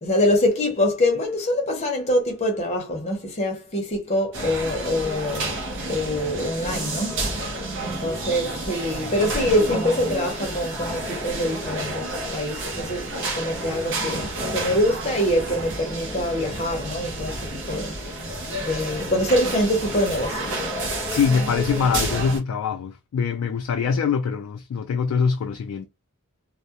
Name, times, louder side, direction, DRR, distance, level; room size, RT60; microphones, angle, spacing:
voice 1, 0.0-5.6 5.9-7.1 7.8-14.2 14.5-17.9 18.6-20.5, left 1 dB, 30° left, 0.7 m, -24 dB
sound 1, 4.3-22.4, right 1 dB, 60° right, 0.7 m, -30 dB
voice 2, 21.1-25.9, left 6 dB, 80° left, 0.3 m, -23 dB
2.2 x 2.1 x 2.7 m
head